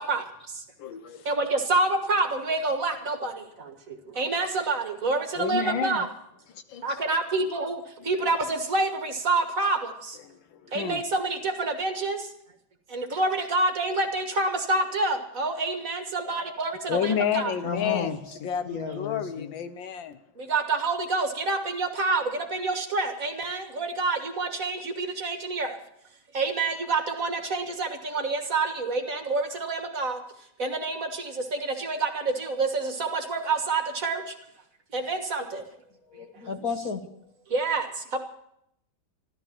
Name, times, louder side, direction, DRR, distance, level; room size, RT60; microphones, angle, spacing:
voice 1, 0.0-0.6 1.3-6.1 6.8-10.2 10.7-12.3 12.9-17.5 20.4-25.8 26.3-30.2 30.6-34.4 34.9-35.6 37.5-38.2, right 3 dB, 45° right, 6 dB, 1.8 m, -28 dB
voice 2, 0.8-1.3 4.1-4.2 5.4-6.1 6.5-7.0 8.0-8.1 10.3-11.0 16.9-20.2, left 8 dB, 75° left, 11 dB, 1.6 m, -30 dB
voice 3, 17.6-18.1 18.4-19.5 36.1-37.0, left 5 dB, 50° left, 6 dB, 1.6 m, -33 dB
14.0 x 13.0 x 7.3 m, 0.73 s
omnidirectional pair, 2.1 m